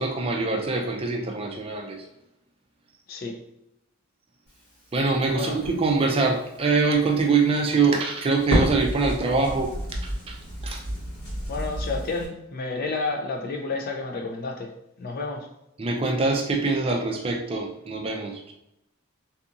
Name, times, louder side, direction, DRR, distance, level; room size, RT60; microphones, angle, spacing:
voice 1, 0.0-2.0 4.9-9.7 10.0-10.4 10.6-10.8 15.8-18.5, right 4 dB, 25° right, 0.4 m, -24 dB
voice 2, 3.1-3.4 5.3-5.6 11.5-15.5, left 3 dB, 45° left, 0.4 m, -31 dB
Crackle, 4.5-12.3, equal, 80° left, 1.4 m, -32 dB
2.7 x 2.6 x 2.4 m
head